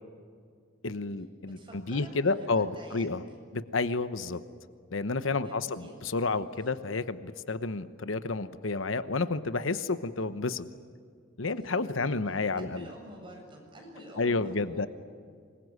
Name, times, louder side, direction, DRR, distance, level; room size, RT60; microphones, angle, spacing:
voice 1, 0.8-3.2 3.5-4.4 4.9-10.6 11.4-12.9 14.2-14.9, left 3 dB, 80° left, 12 dB, 1.0 m, -30 dB
voice 2, 1.5-3.1 5.4-6.0 11.9-12.2 12.6-14.8, right 1 dB, 25° right, 0 dB, 7.8 m, -48 dB
26.0 x 21.5 x 9.6 m, 2.2 s
head